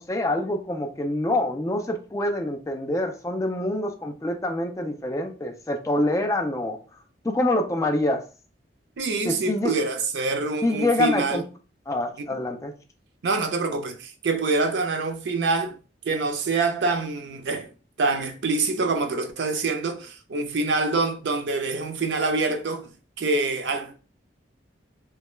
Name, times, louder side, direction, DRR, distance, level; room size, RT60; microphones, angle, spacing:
voice 1, 0.0-6.8 7.2-8.2 9.2-9.7 10.6-11.4 11.9-12.7, left 1 dB, 15° left, 0.3 m, -26 dB
voice 2, 9.0-11.4 13.2-15.8 16.0-17.7 18.0-24.0, right 3 dB, 75° right, 0.4 m, -26 dB
2.3 x 2.1 x 3.0 m
head